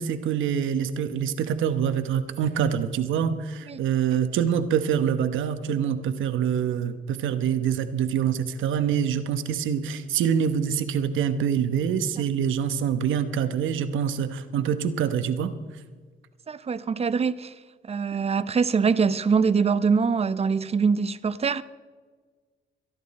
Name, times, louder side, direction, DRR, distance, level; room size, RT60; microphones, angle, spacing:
voice 1, 0.0-15.5, right 8 dB, 80° right, 1.1 m, -25 dB
voice 2, 16.5-17.5 17.8-21.6, right 5 dB, 30° right, 0.6 m, -23 dB
23.0 x 10.5 x 4.2 m
cardioid pair, 90°, 20 cm